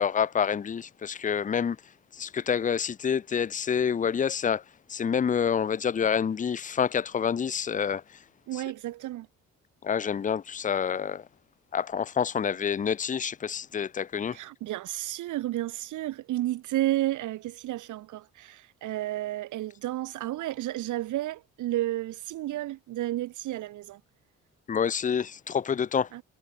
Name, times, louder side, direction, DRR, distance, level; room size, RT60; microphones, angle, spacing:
voice 1, 0.0-1.8 2.1-4.6 4.9-8.2 8.5-8.6 9.8-11.3 11.7-14.4 24.7-26.1, left 7 dB, 25° left, 0.6 m, -27 dB
voice 2, 8.5-9.3 14.3-24.0 26.1-26.2, right 15 dB, 80° right, 1.2 m, -32 dB
cardioid pair, 90°, 30 cm